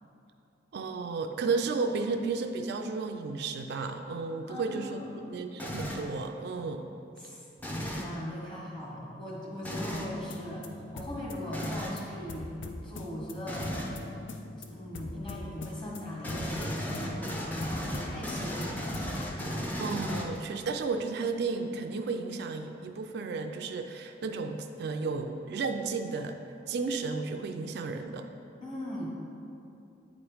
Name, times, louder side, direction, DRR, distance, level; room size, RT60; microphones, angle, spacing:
voice 1, 0.7-5.0 5.3-6.9 19.8-26.4 26.7-28.3, right 4 dB, 60° right, 5 dB, 0.3 m, -33 dB
voice 2, 4.4-5.4 7.2-7.4 7.8-12.5 12.8-13.7 14.7-18.8 28.6-29.1, left 1 dB, 30° left, -5 dB, 1.4 m, -39 dB
sound 1, 5.6-6.1 7.6-8.1 9.6-10.1 11.5-12.0 13.5-14.0 16.2-20.6, equal, 10° left, 0.5 m, -35 dB
sound 2, 10.1-19.3, left 2 dB, 80° left, 0.5 m, -43 dB
8.6 x 3.0 x 4.8 m, 2.8 s
head